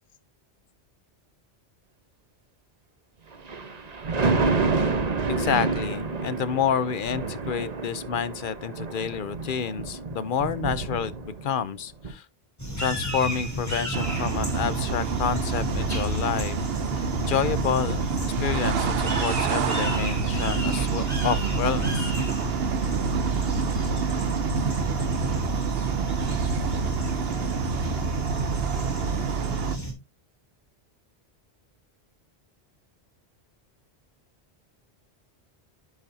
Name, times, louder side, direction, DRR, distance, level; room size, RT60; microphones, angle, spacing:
Thunder, 3.3-11.6 12.0-12.1, right 4 dB, 40° right, 1.0 m, -28 dB
voice 1, 5.3-12.3 12.8-16.6 17.3-18.1 18.4-22.1, left 7 dB, 55° left, 0.8 m, -29 dB
sound 1, 12.6-29.9, equal, 15° left, 3.2 m, -33 dB
sound 2, 13.9-29.8, right 5 dB, 65° right, 1.0 m, -27 dB
11.0 x 5.9 x 2.7 m
omnidirectional pair, 1.1 m